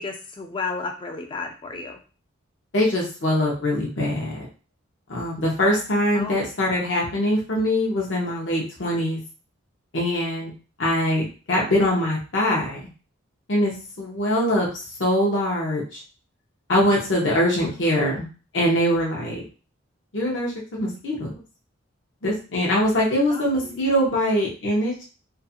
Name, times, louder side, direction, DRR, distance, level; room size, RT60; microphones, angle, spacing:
voice 1, 0.0-2.0 6.1-6.4 23.3-24.0, left 4 dB, 25° left, 4 dB, 0.3 m, -33 dB
voice 2, 2.7-4.5 5.1-9.2 9.9-10.5 10.8-12.9 13.5-14.7 15.0-16.0 16.7-18.2 18.5-19.4 20.1-21.3 22.2-25.1, left 1 dB, 60° left, -3 dB, 0.7 m, -23 dB
2.4 x 2.4 x 2.7 m, 0.35 s
head